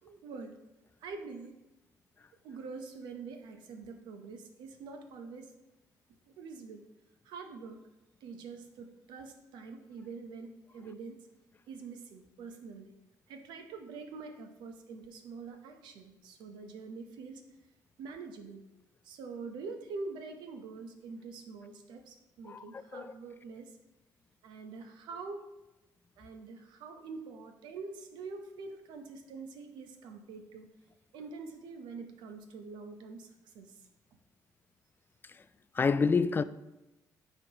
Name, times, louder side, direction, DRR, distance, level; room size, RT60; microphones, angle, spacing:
voice 1, 0.0-0.6 1.0-1.6 2.4-5.5 6.4-6.9 7.2-7.8 8.2-11.3 11.7-12.9 13.3-17.4 18.0-18.6 19.0-23.8 24.4-25.5 26.2-30.7 31.1-33.9, right 4 dB, 80° right, 0.8 m, -45 dB
voice 2, 35.8-36.4, left 5 dB, 30° left, 0.4 m, -27 dB
8.8 x 4.5 x 3.0 m
cardioid pair, 75°, 7 cm